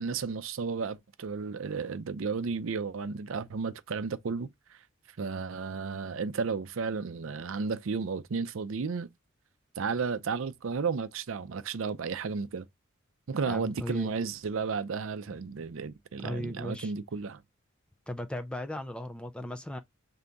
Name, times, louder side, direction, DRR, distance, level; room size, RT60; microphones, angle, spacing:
voice 1, 0.0-4.8 5.2-9.1 9.8-12.7 13.3-17.4, right 5 dB, 70° right, 0.5 m, -33 dB
voice 2, 13.5-14.1 16.2-16.9 18.1-19.8, left 1 dB, 5° left, 0.3 m, -37 dB
3.5 x 2.7 x 3.8 m
head